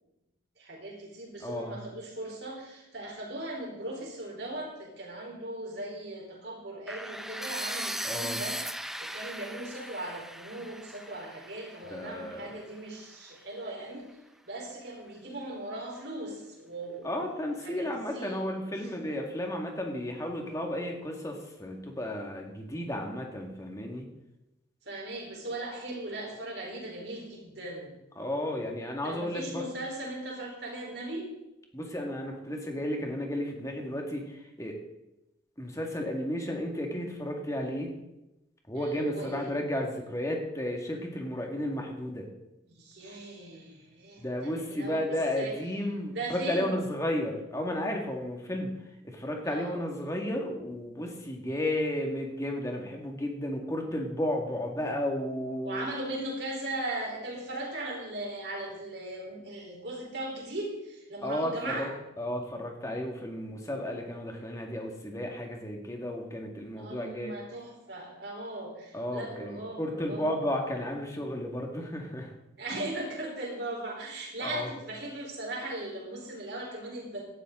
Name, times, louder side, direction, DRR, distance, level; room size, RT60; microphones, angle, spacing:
voice 1, 0.6-14.1 14.5-17.2 17.6-17.9 18.1-18.4 24.8-27.9 29.0-31.3 38.7-39.5 42.7-45.0 45.4-45.5 46.1-46.8 49.5-49.8 55.6-61.9 66.7-70.3 72.6-77.2, right 1 dB, 60° right, -1 dB, 4.2 m, -38 dB
voice 2, 1.4-1.8 8.0-8.4 11.9-12.4 17.0-24.0 28.2-29.7 31.7-34.8 35.6-37.9 38.7-42.3 43.1-43.2 44.2-48.7 49.0-55.9 61.2-61.9 62.2-67.3 68.9-72.3 72.7-72.8 74.4-74.7, left 1 dB, 15° left, 1 dB, 2.1 m, -33 dB
sound 1, 6.9-12.8, right 1 dB, ahead, 0.5 m, -38 dB
18.0 x 12.5 x 3.9 m, 0.92 s
head